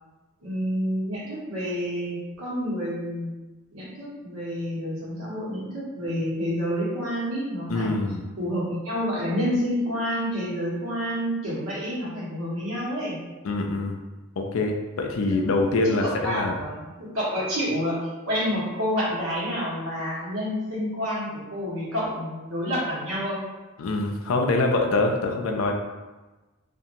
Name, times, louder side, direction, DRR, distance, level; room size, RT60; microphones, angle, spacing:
voice 1, 0.4-3.3 3.7-7.9 8.4-13.2 15.3-15.4 15.8-23.4, equal, 90° right, -7 dB, 1.1 m, -29 dB
voice 2, 7.7-8.2 13.4-14.0 14.4-16.6 23.8-25.7, left 2 dB, 80° left, 2 dB, 0.4 m, -24 dB
2.8 x 2.5 x 2.5 m, 1.2 s
head